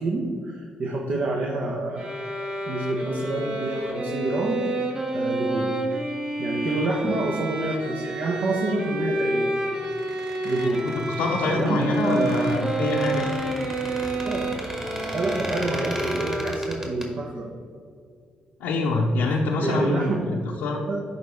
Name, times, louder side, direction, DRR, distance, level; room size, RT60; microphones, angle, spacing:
voice 1, 0.0-2.2 2.7-4.6 5.1-5.7 6.4-9.4 10.4-10.9 11.5-12.5 14.2-14.4 15.1-17.5 19.4-20.2 20.4-20.5 20.9-21.0, right 2 dB, 60° right, -1 dB, 1.0 m, -27 dB
sound 1, 2.0-16.9, right 1 dB, 45° right, 1.5 m, -29 dB
Squeak, 9.8-17.1, equal, 20° right, 1.7 m, -37 dB
voice 2, 11.2-13.2 18.6-20.8, left 3 dB, 85° left, -3 dB, 0.7 m, -25 dB
10.5 x 4.1 x 3.5 m, 2.1 s
supercardioid pair, 60°, 3 cm